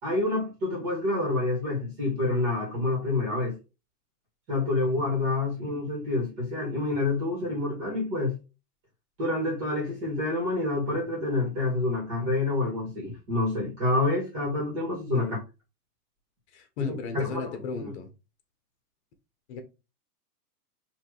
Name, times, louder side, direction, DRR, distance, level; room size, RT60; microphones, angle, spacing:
voice 1, 0.0-3.5 4.5-8.4 9.2-15.3 16.8-17.9, left 2 dB, 25° right, 2.3 m, -28 dB
voice 2, 16.5-18.1 19.5-19.6, left 5 dB, 45° left, 1.1 m, -36 dB
4.4 x 3.3 x 3.2 m
hypercardioid pair, 155°, 47 cm